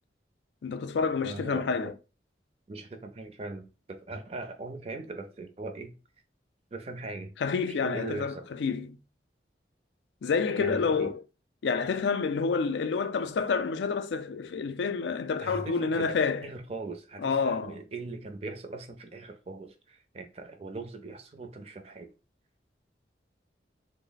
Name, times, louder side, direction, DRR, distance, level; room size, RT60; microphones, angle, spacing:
voice 1, 0.6-1.9 7.4-9.0 10.2-11.2 11.6-16.5 17.2-17.8, left 5 dB, 75° left, 0.4 m, -28 dB
voice 2, 1.2-1.9 2.7-5.9 6.7-7.3 7.8-8.5 10.6-11.1 15.4-16.1 16.4-22.1, right 2 dB, 35° right, 0.5 m, -40 dB
3.2 x 2.0 x 3.8 m
head